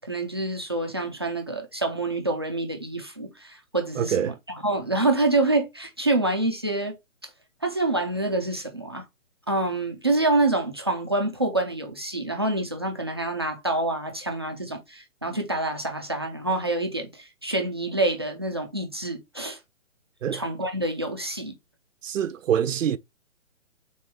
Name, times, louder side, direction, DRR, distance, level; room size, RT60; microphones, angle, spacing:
voice 1, 0.0-4.3 4.6-7.0 7.6-9.0 9.5-19.6 20.3-21.5, right 2 dB, 20° right, 0.3 m, -27 dB
voice 2, 4.0-4.3 20.2-20.4 22.0-23.0, right 8 dB, 75° right, 0.6 m, -25 dB
3.8 x 3.7 x 3.4 m
hypercardioid pair, 150°, 38 cm